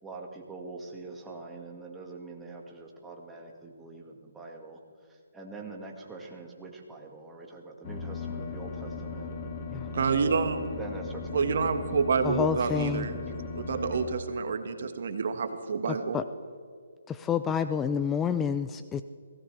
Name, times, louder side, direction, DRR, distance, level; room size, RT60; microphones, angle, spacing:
voice 1, 0.0-4.8 5.1-9.5 10.8-11.3 11.6-11.7 13.7-13.9, right 3 dB, 10° right, 0 dB, 1.9 m, -44 dB
sound 1, 7.8-14.1, left 4 dB, 35° left, 2.9 m, -37 dB
voice 2, 9.9-10.6 11.3-13.2 13.5-16.2, right 5 dB, 60° right, 7 dB, 1.6 m, -28 dB
voice 3, 12.2-13.1 16.1-16.2 17.1-19.0, left 7 dB, 10° left, 11 dB, 0.4 m, -28 dB
23.0 x 17.0 x 3.4 m, 2.2 s
hypercardioid pair, 155°, 0 cm